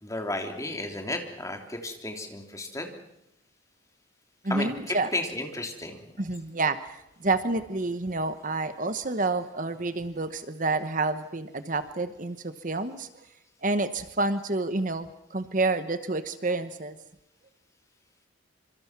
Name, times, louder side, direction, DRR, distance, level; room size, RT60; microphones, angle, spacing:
voice 1, 0.0-2.9 4.5-6.2, left 2 dB, 15° left, 4 dB, 3.1 m, -33 dB
voice 2, 4.4-5.1 6.2-13.3 13.6-17.0, right 3 dB, 45° right, 11 dB, 1.1 m, -29 dB
26.0 x 26.0 x 6.0 m, 0.83 s
head